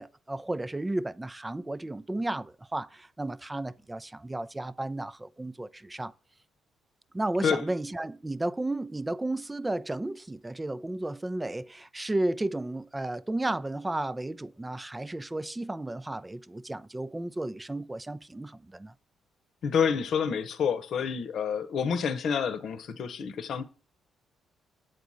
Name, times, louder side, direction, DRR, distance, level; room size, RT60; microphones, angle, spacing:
voice 1, 0.0-6.1 7.1-18.9, right 2 dB, 15° right, 0.5 m, -33 dB
voice 2, 19.6-23.6, left 6 dB, 65° left, 0.9 m, -28 dB
8.0 x 4.2 x 6.2 m
cardioid pair, 90°, 0 cm